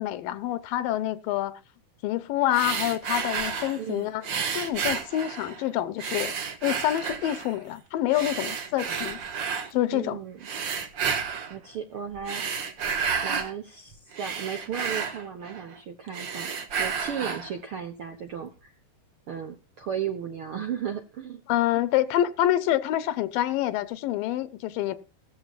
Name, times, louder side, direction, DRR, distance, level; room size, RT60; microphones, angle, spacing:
voice 1, 0.0-1.6 2.0-4.3 4.5-6.3 6.6-9.2 9.7-10.2 21.5-25.0, left 13 dB, 80° left, 2.5 m, -27 dB
sound 1, 2.5-3.8 4.2-5.6 6.0-7.5 8.1-9.7 10.4-11.6 12.1-13.5 13.9-15.8 16.1-17.5, right 6 dB, 85° right, 1.0 m, -31 dB
voice 2, 3.8-4.1 9.9-10.4 11.5-12.4 13.2-16.5 16.8-18.7 19.3-21.4, right 8 dB, 65° right, 1.3 m, -35 dB
17.0 x 14.0 x 2.4 m
omnidirectional pair, 4.0 m